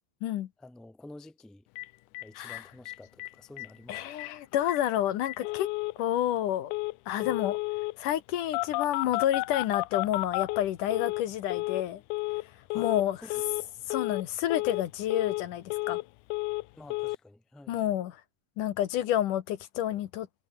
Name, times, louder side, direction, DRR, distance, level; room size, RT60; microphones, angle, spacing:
voice 1, 0.6-1.7 2.2-4.0 7.2-7.4 12.7-12.9 13.2-13.7 16.7-17.8, left 2 dB, ahead, 1.2 m, -50 dB
Telephone, 1.8-1.9 2.1-2.2 2.5-2.6 2.9-3.3 3.6-3.7 3.9-4.3 4.7-4.8 5.3-5.9 6.7-6.9 7.2-7.9 8.5-11.2 11.5-11.8 12.1-12.4 12.7-13.0 13.3-13.6 13.9-14.2 14.5-14.8 15.1-16.0 16.3-16.6 16.9-17.2, left 22 dB, 90° left, 1.7 m, -32 dB
voice 2, 3.9-5.7 6.0-6.7 7.1-7.6 8.0-12.0 12.7-13.2 13.9-16.0 17.7-18.2 18.6-20.3, left 12 dB, 70° left, 2.5 m, -29 dB
omnidirectional pair, 4.1 m